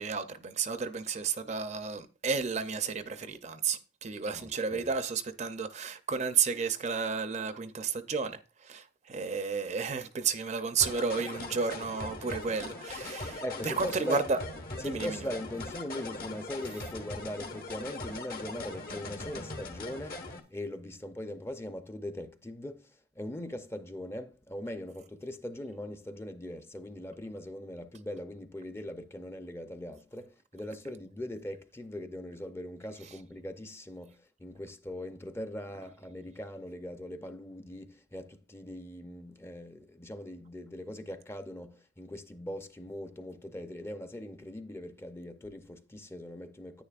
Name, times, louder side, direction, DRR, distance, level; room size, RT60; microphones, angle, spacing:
voice 1, 0.0-14.4 14.7-15.3, right 5 dB, 40° right, 0.5 m, -32 dB
voice 2, 4.3-4.9 13.4-14.2 14.8-46.8, left 1 dB, 15° left, 0.6 m, -41 dB
sound 1, 10.8-20.4, left 2 dB, 55° left, 1.3 m, -41 dB
10.0 x 9.4 x 2.4 m
head